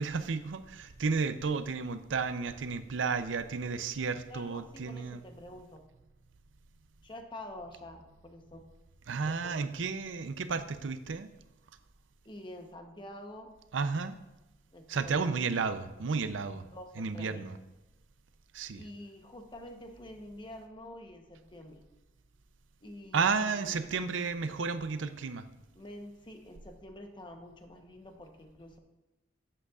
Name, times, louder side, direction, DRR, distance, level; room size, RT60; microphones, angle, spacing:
voice 1, 0.0-5.2 9.1-11.3 13.7-14.2 14.9-16.6 17.0-17.6 18.5-18.8 23.1-25.4, right 5 dB, 80° right, 11 dB, 0.5 m, -32 dB
voice 2, 4.3-5.8 7.0-8.7 9.3-9.7 12.2-13.5 14.7-15.3 16.6-17.5 18.8-21.8 22.8-23.8 25.7-28.8, left 1 dB, 25° left, 4 dB, 0.9 m, -47 dB
12.5 x 7.8 x 2.4 m, 1.0 s
head